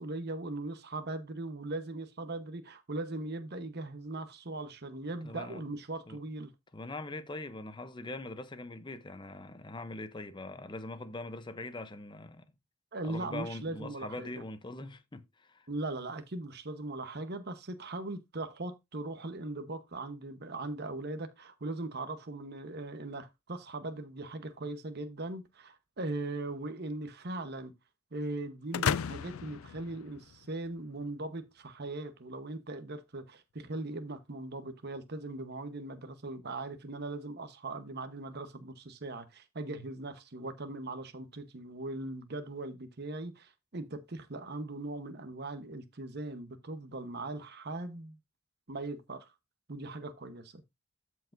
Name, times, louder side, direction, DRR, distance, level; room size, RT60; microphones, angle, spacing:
voice 1, 0.0-6.5 12.9-14.3 15.7-27.7 28.1-48.2 48.7-49.3 49.7-50.6, right 2 dB, 50° right, 1.0 m, -39 dB
voice 2, 5.2-5.8 6.1-6.2 6.7-12.5 13.0-15.7, left 2 dB, 25° left, 0.7 m, -42 dB
sound 1, 28.7-30.7, left 8 dB, 90° left, 0.4 m, -34 dB
13.5 x 4.7 x 2.6 m
head